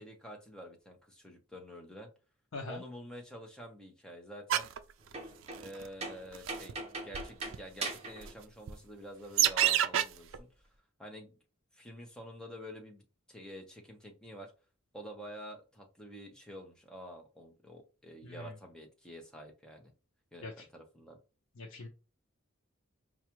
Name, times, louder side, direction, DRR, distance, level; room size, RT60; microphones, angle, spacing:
voice 1, 0.0-2.1 2.7-4.7 5.6-10.5 11.0-11.3 11.7-13.0 13.3-14.5 14.9-19.9 20.3-21.2, equal, 5° left, 1 dB, 0.8 m, -48 dB
sound 1, 4.5-4.8 5.5-5.9 6.3-6.7 7.1-7.2 7.5-7.6 8.2-8.3 8.7-8.8 9.4-10.0 10.3-10.4, right 11 dB, 70° right, 0.4 m, -27 dB
sound 2, 5.0-5.8 6.0-8.3 8.6-8.7 9.6-9.8, right 3 dB, 30° right, 0.9 m, -40 dB
voice 2, 18.2-18.6 20.4-20.5 21.6-21.9, left 2 dB, 80° left, 1 dB, 0.6 m, -42 dB
4.7 x 2.4 x 2.9 m, 0.33 s
head